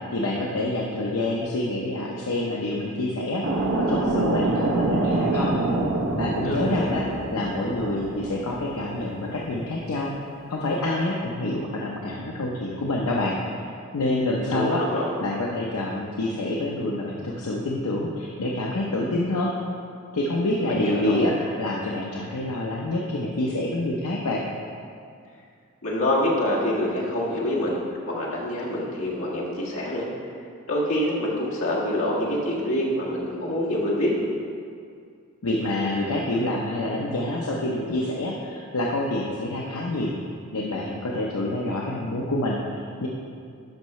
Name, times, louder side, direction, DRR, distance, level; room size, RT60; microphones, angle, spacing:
voice 1, 0.1-5.5 6.2-7.0 7.3-10.1 10.5-13.4 13.9-14.8 15.2-19.5 20.1-24.4 35.4-40.1 40.5-43.1, left 1 dB, 90° left, -3 dB, 0.7 m, -27 dB
sound 1, 3.4-9.8, right 2 dB, 65° right, 0.8 m, -26 dB
voice 2, 6.4-7.0 14.5-15.1 20.6-21.2 25.8-27.8 28.1-30.1 30.7-34.2, left 1 dB, 70° left, -5 dB, 1.7 m, -26 dB
11.5 x 5.6 x 3.1 m, 2.3 s
head